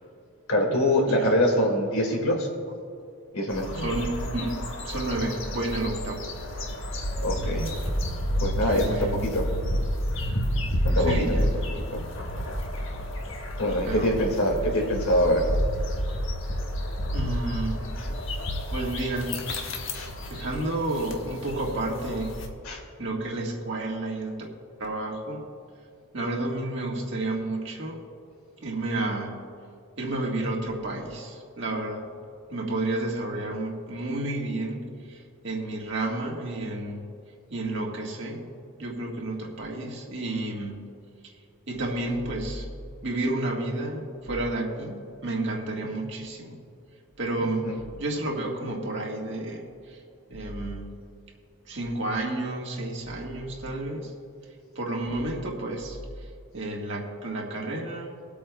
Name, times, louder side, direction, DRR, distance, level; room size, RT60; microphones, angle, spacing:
voice 1, 0.5-2.5 3.3-3.8 7.2-7.7 8.4-9.5 10.8-11.3 11.9-12.0 13.6-15.4 18.0-18.1 19.9-20.1 22.6-22.8 47.4-47.7, left 1 dB, 80° left, 1 dB, 2.1 m, -24 dB
sound 1, 3.5-22.5, equal, 60° left, 1.3 m, -30 dB
voice 2, 3.8-6.3 8.6-9.2 9.6-9.8 11.0-11.7 13.8-14.1 17.1-17.8 18.7-19.4 20.3-22.3 23.0-24.5 24.8-25.4 26.1-28.0 28.6-29.4 30.0-32.1 32.5-37.1 37.5-38.5 38.8-40.9 41.7-42.6 43.0-46.6 47.2-47.7 48.0-50.0 50.3-51.0 51.7-54.1 54.7-56.0 56.5-58.2, right 2 dB, 55° right, -1 dB, 1.7 m, -31 dB
24.5 x 8.5 x 2.3 m, 2.4 s
head